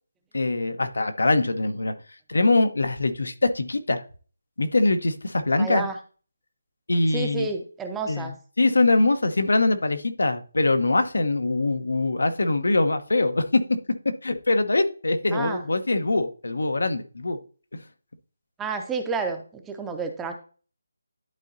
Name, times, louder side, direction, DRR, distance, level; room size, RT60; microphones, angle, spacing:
voice 1, 0.3-1.9 2.3-4.0 4.6-5.8 6.9-7.5 8.1-13.4 14.2-17.4, left 2 dB, 85° left, 9 dB, 0.9 m, -23 dB
voice 2, 5.6-6.0 7.1-8.3 15.3-15.6 18.6-20.3, right 4 dB, 5° right, 5 dB, 0.5 m, -30 dB
11.5 x 3.9 x 2.7 m, 0.39 s
figure-of-eight pair, 170°, 0 cm